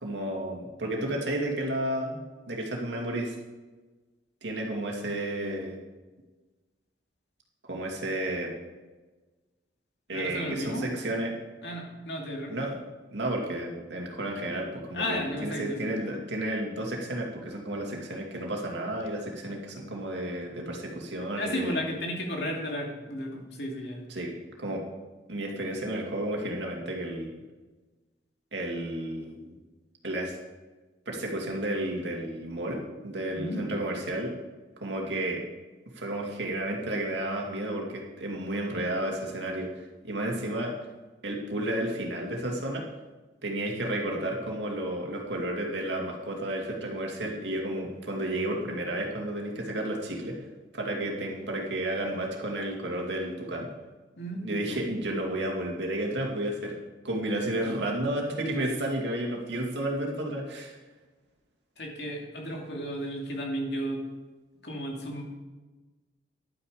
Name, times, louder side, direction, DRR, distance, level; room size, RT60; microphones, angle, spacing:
voice 1, 0.0-2.2 2.5-3.4 4.4-5.8 7.7-8.5 10.1-11.3 12.5-12.8 13.1-21.8 24.1-24.3 24.6-24.8 25.3-27.4 28.5-29.6 30.0-30.4 31.1-34.3 34.8-35.5 35.9-40.7 41.2-42.8 43.4-50.5 50.7-53.7 54.4-56.8 57.0-60.8, right 1 dB, 80° right, 0 dB, 2.4 m, -32 dB
voice 2, 10.1-10.9 11.6-12.5 14.9-15.9 21.4-24.0 33.3-33.6 54.2-54.4 61.8-64.0 64.6-65.2, equal, 70° left, 0 dB, 2.5 m, -33 dB
11.0 x 9.2 x 4.9 m, 1.2 s
head